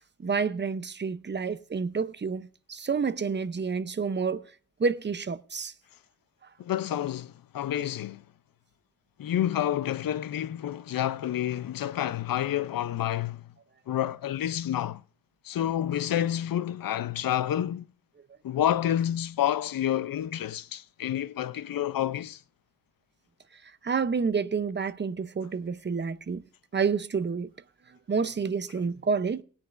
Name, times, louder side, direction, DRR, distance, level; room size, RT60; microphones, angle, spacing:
voice 1, 0.2-4.5 4.8-5.7 23.8-26.4 26.7-27.5 27.9-29.4, right 5 dB, 30° right, 0.6 m, -29 dB
voice 2, 6.6-8.2 9.2-13.4 13.9-15.0 15.4-17.8 18.4-22.4, left 11 dB, 75° left, 0.6 m, -29 dB
19.0 x 9.7 x 2.5 m
wide cardioid pair, 125°, 34 cm